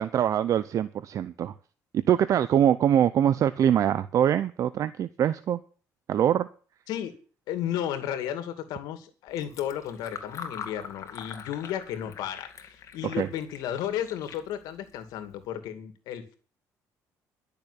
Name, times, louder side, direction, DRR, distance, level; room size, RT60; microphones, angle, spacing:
voice 1, 0.0-1.5 1.9-5.6 6.1-6.5 13.0-13.3, right 10 dB, 55° right, 15 dB, 0.6 m, -23 dB
voice 2, 7.5-16.4, left 10 dB, 85° left, 9 dB, 2.4 m, -33 dB
Fill (with liquid), 9.3-15.5, left 6 dB, 50° left, 2.3 m, -44 dB
12.0 x 6.9 x 9.8 m, 0.40 s
cardioid pair, 105°, 7 cm